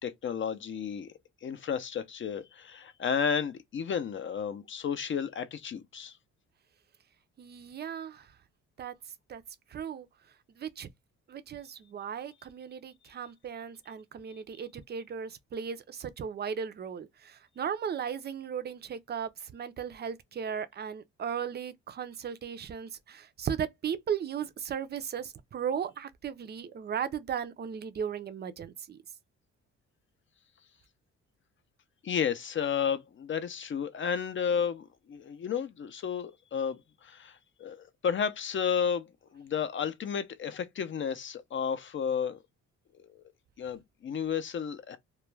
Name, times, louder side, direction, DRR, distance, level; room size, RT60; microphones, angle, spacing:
voice 1, 0.0-1.1 1.4-6.2 14.3-14.4 32.0-39.1 39.3-42.4 43.0-43.2 43.6-45.0, left 7 dB, 40° left, 0.5 m, -32 dB
voice 2, 7.4-8.3 8.8-8.9 9.3-9.4 9.7-10.1 10.6-10.9 11.3-29.0, right 7 dB, 35° right, 0.4 m, -36 dB
2.3 x 2.1 x 3.1 m
cardioid pair, 90°, 30 cm